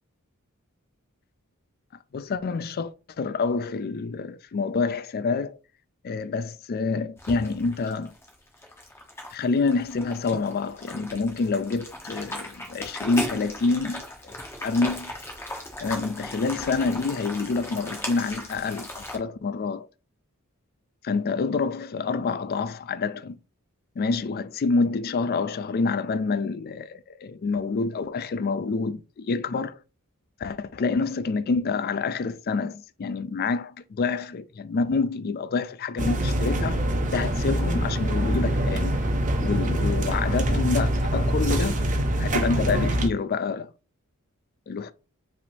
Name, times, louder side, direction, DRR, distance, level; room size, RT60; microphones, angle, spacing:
voice 1, 2.1-2.9 3.2-5.6 6.0-8.1 9.3-14.4 14.6-15.1 15.8-19.9 21.0-23.4 24.0-29.8 30.4-36.8 37.1-38.9 39.4-41.8 42.2-43.7 44.7-44.9, left 4 dB, 45° left, 0.4 m, -27 dB
sound 1, 7.2-19.2, left 1 dB, 10° left, 1.0 m, -37 dB
sound 2, 36.0-43.1, right 1 dB, 35° right, 0.7 m, -24 dB
5.1 x 3.5 x 2.7 m
head